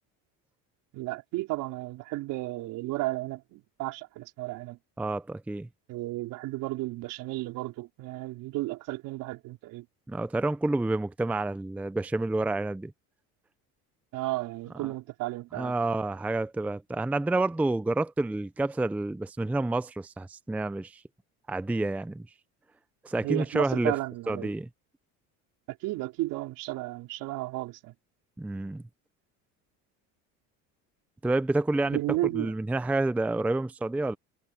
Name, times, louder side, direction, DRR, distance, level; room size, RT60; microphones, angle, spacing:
voice 1, 0.9-4.8 5.9-9.9 14.1-15.7 23.2-24.5 25.8-27.9 31.9-32.5, right 19 dB, 70° right, 4.4 m, -33 dB
voice 2, 5.0-5.7 10.1-12.9 14.8-14.9 15.5-21.0 21.5-22.3 23.0-23.9 24.3-24.7 28.4-28.8 31.2-32.0 32.3-34.2, right 2 dB, 5° right, 0.5 m, -29 dB
cardioid pair, 115°, 33 cm